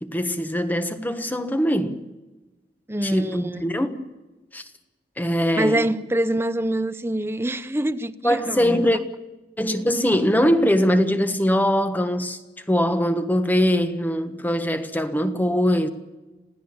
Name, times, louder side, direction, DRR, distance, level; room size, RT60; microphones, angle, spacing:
voice 1, 0.0-2.0 3.0-4.1 4.5-4.6 5.2-5.8 8.2-9.0 9.6-12.4 12.7-15.9, equal, 10° left, 1.3 m, -22 dB
voice 2, 2.9-3.7 5.6-9.0, right 1 dB, 15° right, 0.8 m, -25 dB
27.0 x 16.5 x 7.2 m
head